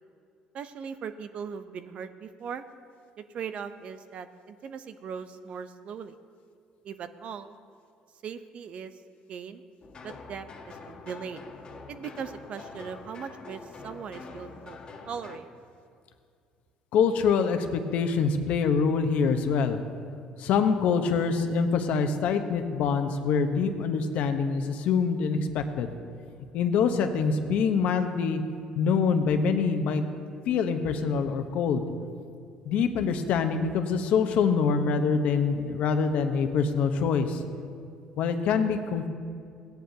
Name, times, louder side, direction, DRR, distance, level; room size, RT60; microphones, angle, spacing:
voice 1, 0.5-2.6 3.3-6.1 6.8-7.6 8.2-8.9 9.3-9.6 10.0-11.4 11.9-14.8 15.1-15.5, right 7 dB, 55° right, 11 dB, 0.6 m, -39 dB
sound 1, 9.8-15.4, left 4 dB, 40° left, 1.6 m, -45 dB
voice 2, 16.9-19.8 20.4-25.9 26.5-28.4 28.8-30.0 30.5-31.9 32.6-37.4 38.2-39.1, left 5 dB, 70° left, 6 dB, 0.9 m, -25 dB
16.5 x 10.5 x 2.8 m, 2.3 s
supercardioid pair, 85°, 2 cm